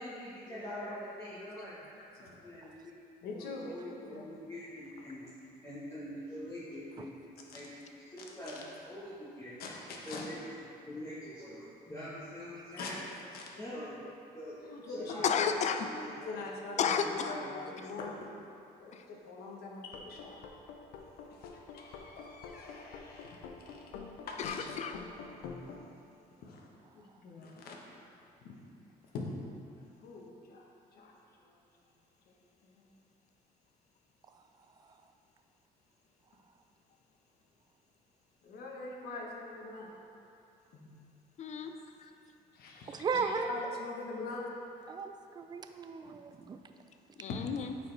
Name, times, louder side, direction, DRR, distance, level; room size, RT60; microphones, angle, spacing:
voice 1, 0.0-1.7 2.2-2.9 3.2-5.2 5.6-7.2 7.5-7.7 8.1-9.6 10.0-10.4 10.9-13.0 13.5-13.9 14.3-14.5 14.9-15.5 15.8-16.3 16.8-17.7, left 1 dB, 15° left, -11 dB, 1.3 m, -44 dB
voice 2, 2.0-2.3 3.2-4.3 7.5-7.6 8.5-8.6 9.6-10.3 12.8-12.9 13.3-13.5 14.6-15.5 16.2-18.3 18.8-20.4 21.3-23.8 24.2-24.8 26.4-26.7 26.9-27.8 29.1-29.2 30.0-30.6 30.9-31.1 31.4-31.5 32.3-32.4 32.6-32.9 38.4-39.9 40.7-40.9 41.8-41.9 42.5-44.4 47.3-47.4, left 3 dB, 65° left, -1 dB, 1.1 m, -44 dB
voice 3, 15.2-15.8 16.8-17.4 18.9-19.0 24.4-24.9 41.4-41.7 42.0-42.1 47.2-47.7, left 7 dB, 45° left, 7 dB, 0.5 m, -32 dB
sound 1, 19.8-25.8, left 5 dB, 90° left, 0.6 m, -47 dB
voice 4, 42.9-43.8 44.9-46.6, right 5 dB, 25° right, 7 dB, 0.4 m, -36 dB
8.8 x 4.4 x 3.3 m, 2.6 s
cardioid pair, 110°, 17 cm